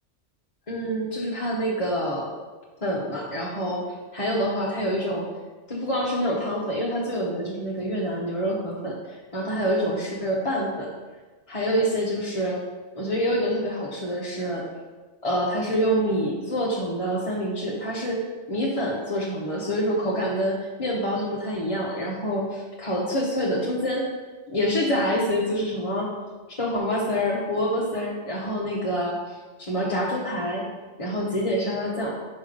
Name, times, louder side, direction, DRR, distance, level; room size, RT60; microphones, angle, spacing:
voice 1, 0.7-2.3 2.8-3.8 4.1-5.3 5.7-9.0 9.3-10.9 11.5-12.6 13.0-14.7 15.2-18.2 18.5-24.1 24.5-26.1 26.6-30.6 31.0-32.2, equal, 30° left, -5 dB, 0.8 m, -26 dB
5.4 x 4.4 x 5.1 m, 1.3 s
omnidirectional pair, 1.3 m